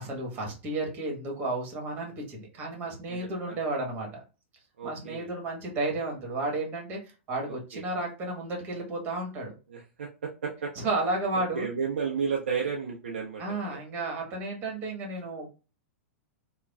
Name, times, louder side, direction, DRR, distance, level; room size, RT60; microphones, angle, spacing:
voice 1, 0.0-4.2 4.8-7.0 7.3-9.5 10.7-11.7 13.4-15.5, right 2 dB, 30° right, 0 dB, 1.2 m, -32 dB
voice 2, 3.1-3.6 4.8-5.3 7.5-7.8 9.7-10.7 11.5-13.8, right 6 dB, 65° right, 0 dB, 0.5 m, -33 dB
3.3 x 2.2 x 2.3 m, 0.32 s
figure-of-eight pair, 100°, 7 cm